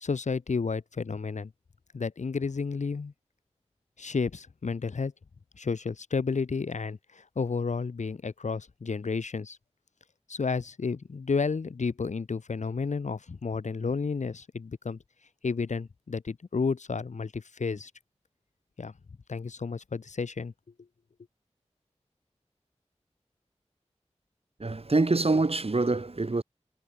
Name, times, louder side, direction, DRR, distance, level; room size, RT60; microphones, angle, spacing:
voice 1, 0.0-1.5 1.9-3.1 4.0-5.1 5.6-9.6 10.3-15.0 15.4-17.9 18.8-18.9 19.3-20.5, left 4 dB, 85° left, 0.8 m, -31 dB
voice 2, 24.6-26.4, right 3 dB, 55° right, 2.1 m, -25 dB
wide cardioid pair, 45°, 12 cm